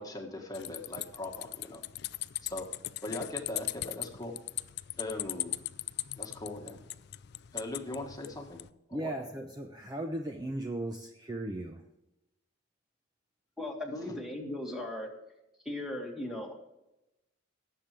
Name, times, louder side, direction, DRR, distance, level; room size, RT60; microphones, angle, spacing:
voice 1, 0.0-1.8 2.4-2.6 3.0-4.4 5.0-5.5 6.2-6.8 7.5-8.6 8.9-9.1, left 2 dB, 20° left, 1 dB, 1.6 m, -40 dB
sound 1, 0.5-8.7, left 16 dB, 55° left, 0.4 m, -39 dB
voice 2, 8.9-11.8, right 1 dB, 20° right, 3 dB, 0.7 m, -37 dB
voice 3, 13.6-15.1 15.6-16.5, left 1 dB, ahead, 0 dB, 2.1 m, -37 dB
18.5 x 7.6 x 3.3 m, 0.91 s
head